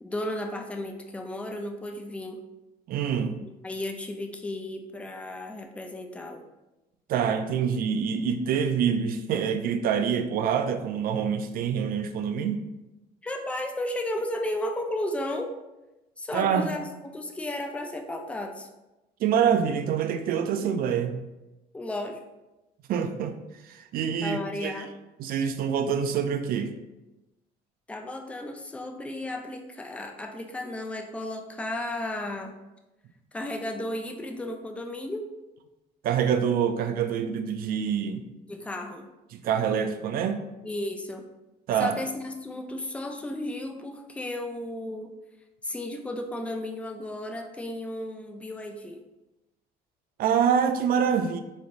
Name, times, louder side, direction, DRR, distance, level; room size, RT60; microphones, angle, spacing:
voice 1, 0.0-2.4 3.4-6.4 13.2-15.5 16.2-18.7 21.7-22.2 24.2-24.9 27.9-32.6 33.3-35.3 38.5-39.1 40.6-41.3 41.8-45.1 45.6-49.0, left 1 dB, 5° left, 4 dB, 0.4 m, -34 dB
voice 2, 2.9-3.4 7.1-12.6 16.3-16.8 19.2-21.2 22.9-23.4 23.6-24.8 25.2-26.7 36.0-38.2 39.3-40.4 41.7-42.0 50.2-51.4, right 7 dB, 60° right, 8 dB, 0.4 m, -26 dB
3.9 x 3.1 x 2.5 m, 1.0 s
cardioid pair, 110°, 17 cm